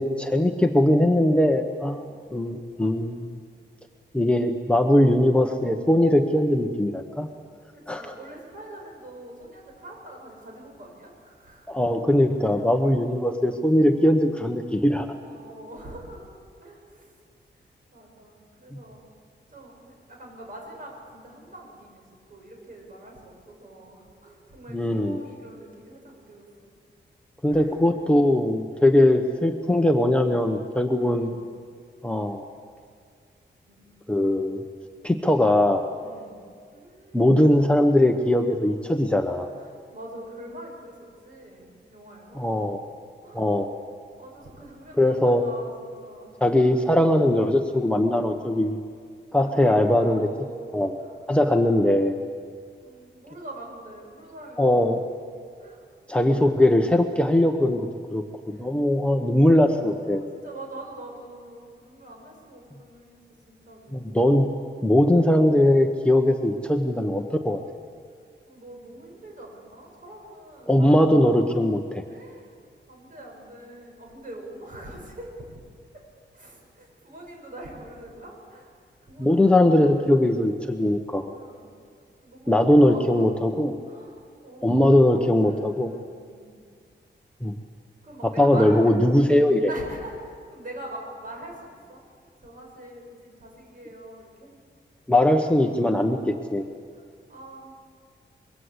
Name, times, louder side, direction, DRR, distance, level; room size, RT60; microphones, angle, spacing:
voice 1, 0.0-2.0 2.3-3.3 4.1-7.3 7.9-8.1 11.7-15.1 24.7-25.2 27.4-31.3 32.0-32.4 34.1-34.6 35.0-35.8 37.1-39.5 42.4-42.8 43.3-43.7 45.0-45.4 46.4-48.8 49.3-50.3 50.7-51.0 51.3-52.1 54.6-55.0 56.1-60.2 63.9-64.5 64.8-67.6 70.7-72.0 79.2-81.3 82.5-83.7 84.6-85.9 87.4-87.5 88.2-89.7 95.1-96.6, left 1 dB, 5° left, 3 dB, 1.0 m, -20 dB
voice 2, 1.8-2.1 4.9-5.1 7.7-11.8 12.4-12.6 15.3-16.3 16.6-17.2 17.6-17.7 17.9-19.1 19.5-26.7 27.5-27.8 28.7-29.0 30.9-31.4 33.7-33.9 35.1-35.3 36.0-37.7 39.5-42.8 43.2-43.5 44.1-46.7 49.4-50.7 51.0-51.6 52.8-54.9 55.6-55.9 58.5-58.7 59.3-59.6 60.1-64.2 65.0-65.2 68.4-71.2 72.1-72.5 72.9-75.6 75.9-76.0 76.3-80.1 81.3-81.7 82.2-83.4 83.8-86.6 88.0-88.9 89.7-92.0 92.4-94.5 96.9-97.8, right 1 dB, 50° right, 0 dB, 7.7 m, -44 dB
25.5 x 23.0 x 8.2 m, 2.1 s
wide cardioid pair, 175°, 19 cm